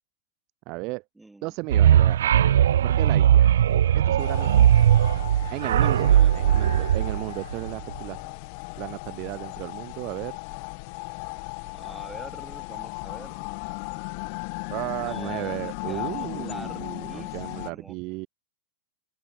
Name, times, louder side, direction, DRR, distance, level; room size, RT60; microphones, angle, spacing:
voice 1, 0.7-1.0 1.4-2.3 2.8-3.5 3.9-4.5 5.5-8.3 8.8-10.4 14.7-18.3, right 25 dB, 30° right, 3.8 m, -34 dB
voice 2, 1.2-1.5 5.6-6.9 11.7-13.6 15.0-17.9, right 2 dB, 5° right, 2.9 m, -45 dB
sound 1, 1.7-7.9, right 10 dB, 85° right, 0.9 m, -19 dB
sound 2, 4.2-17.7, left 36 dB, 35° left, 1.4 m, -36 dB
open air
supercardioid pair, 175°, 0 cm